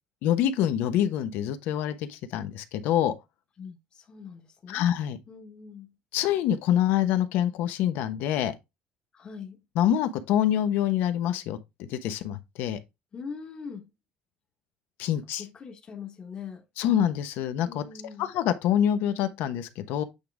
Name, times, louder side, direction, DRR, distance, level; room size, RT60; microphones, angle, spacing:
voice 1, 0.2-3.1 4.7-5.2 6.1-8.6 9.8-12.8 15.0-15.4 16.8-17.8 18.2-20.0, left 10 dB, 65° left, 1.0 m, -26 dB
voice 2, 3.6-4.9 5.3-5.9 9.1-9.6 13.1-13.9 15.4-16.6 17.7-18.3, left 6 dB, 25° left, 1.3 m, -42 dB
8.5 x 3.7 x 3.4 m
cardioid pair, 170°, 4 cm